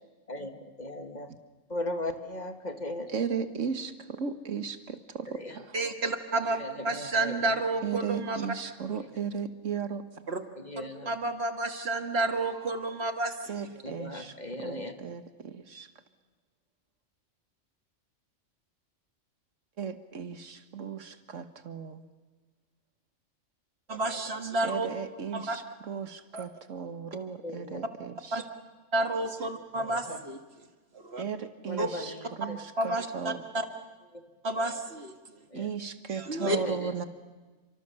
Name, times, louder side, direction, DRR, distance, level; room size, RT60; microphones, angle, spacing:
voice 1, 0.3-1.3 1.7-3.1 5.3-5.5 6.4-7.5 10.6-11.1 13.8-14.9 27.4-27.8 29.5-30.2 31.7-32.6 34.1-34.2 35.5-35.7 36.4-36.9, left 1 dB, 35° left, 6 dB, 1.8 m, -38 dB
voice 2, 3.1-5.8 7.8-10.0 13.5-15.9 19.8-22.0 24.6-28.5 31.2-33.5 35.5-37.0, right 6 dB, 75° right, 10 dB, 1.7 m, -36 dB
voice 3, 5.7-8.4 10.3-10.4 10.8-13.3 23.9-24.9 25.3-25.6 26.3-26.4 28.3-28.4 28.9-30.4 31.0-31.2 31.8-31.9 32.8-33.6 34.4-35.1 36.3-36.6, right 2 dB, 55° right, 6 dB, 2.0 m, -30 dB
30.0 x 25.0 x 7.0 m, 1.3 s
omnidirectional pair, 1.3 m